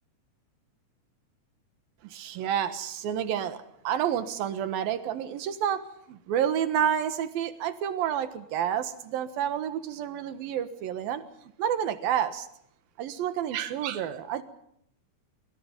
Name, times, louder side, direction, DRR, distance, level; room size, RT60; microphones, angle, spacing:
voice 1, 2.0-5.8 6.1-12.5 13.0-14.4, right 9 dB, 75° right, 11 dB, 3.2 m, -29 dB
25.0 x 25.0 x 5.4 m, 0.71 s
omnidirectional pair, 4.3 m